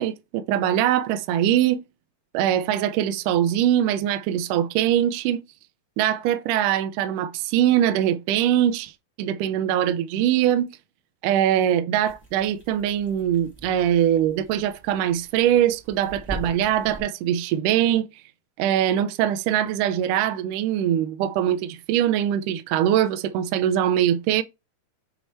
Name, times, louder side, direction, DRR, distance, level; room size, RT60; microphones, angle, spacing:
voice 1, 0.0-1.8 2.3-5.4 6.0-8.9 9.2-10.7 11.2-18.1 18.6-24.4, right 11 dB, 80° right, 1.9 m, -22 dB
sound 1, 12.0-17.0, right 2 dB, 5° left, 1.8 m, -42 dB
6.9 x 4.3 x 4.4 m
omnidirectional pair, 4.3 m